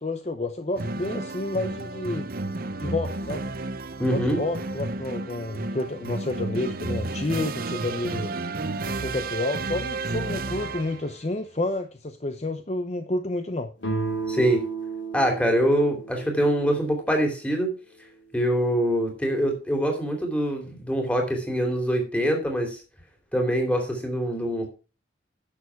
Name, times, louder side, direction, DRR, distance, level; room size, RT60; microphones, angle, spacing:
voice 1, 0.0-2.3 2.8-3.4 4.1-8.3 8.8-13.7, left 2 dB, 35° left, 0.7 m, -30 dB
sound 1, 0.8-11.2, right 2 dB, 50° right, 0.7 m, -32 dB
voice 2, 4.0-4.4 14.3-14.7 15.1-17.7 18.3-22.8 23.3-24.7, equal, 5° left, 2.8 m, -24 dB
sound 2, 13.8-17.4, right 4 dB, 75° left, 3.1 m, -33 dB
11.0 x 7.1 x 4.6 m
head